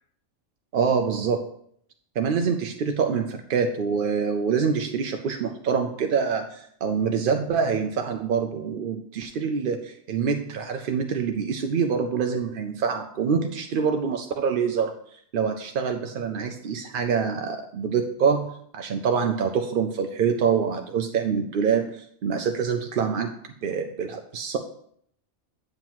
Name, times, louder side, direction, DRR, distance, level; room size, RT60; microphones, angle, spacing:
voice 1, 0.7-1.5 2.2-14.9 15.3-23.3 23.6-24.6, right 6 dB, 60° right, 4 dB, 0.6 m, -25 dB
7.9 x 7.3 x 3.0 m, 0.67 s
omnidirectional pair, 1.4 m